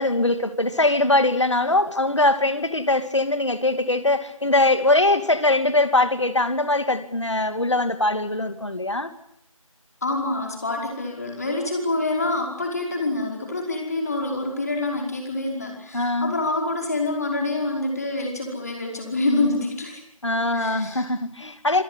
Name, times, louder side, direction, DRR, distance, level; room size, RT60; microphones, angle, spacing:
voice 1, 0.0-9.1 15.9-16.3 20.2-21.8, left 2 dB, 55° left, 10 dB, 2.6 m, -21 dB
voice 2, 10.0-20.0 20.5-21.0, left 2 dB, 30° left, 1 dB, 5.2 m, -26 dB
27.0 x 18.0 x 8.4 m, 0.70 s
figure-of-eight pair, 165°, 18 cm